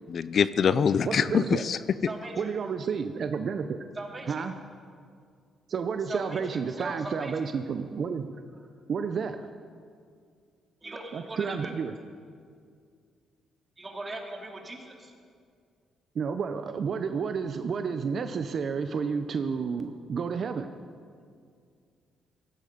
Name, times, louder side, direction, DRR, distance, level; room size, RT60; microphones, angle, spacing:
voice 1, 0.1-1.8, left 7 dB, 55° left, 15 dB, 0.5 m, -24 dB
voice 2, 1.1-1.6 2.4-3.8 4.3-4.5 5.7-8.3 8.9-9.5 11.1-12.0 16.1-20.7, right 6 dB, 55° right, 8 dB, 0.7 m, -31 dB
voice 3, 2.1-2.5 4.0-4.4 6.1-6.4 6.8-7.3 10.8-11.7 13.8-15.1, right 2 dB, 25° right, 1 dB, 2.8 m, -39 dB
16.5 x 14.5 x 5.3 m, 2.2 s
cardioid pair, 90°, 0 cm